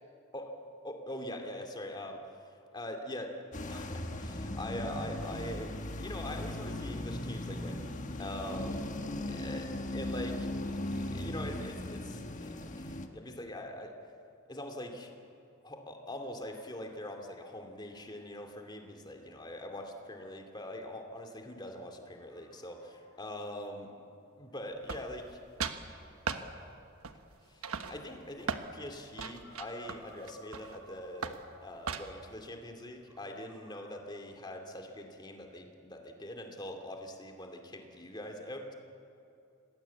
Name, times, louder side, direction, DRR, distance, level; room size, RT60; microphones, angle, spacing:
voice 1, 0.8-2.2 2.7-5.7 6.0-7.8 8.2-8.8 9.3-10.5 11.1-12.5 12.8-14.0 14.5-15.1 15.6-23.9 24.4-25.4 26.3-26.6 27.5-38.7, left 1 dB, 20° left, 4 dB, 2.5 m, -43 dB
sound 1, 3.5-13.1, left 1 dB, 35° left, 1.5 m, -38 dB
sound 2, 17.7-32.7 33.0-33.9, left 1 dB, 10° right, 7.9 m, -62 dB
sound 3, 24.9-25.3 25.6-25.8 26.3-26.5 27.0-27.3 27.6-28.7 29.2-30.8 31.2-31.5 31.9-32.3, right 5 dB, 90° right, 1.3 m, -37 dB
27.0 x 20.0 x 8.5 m, 2.6 s
head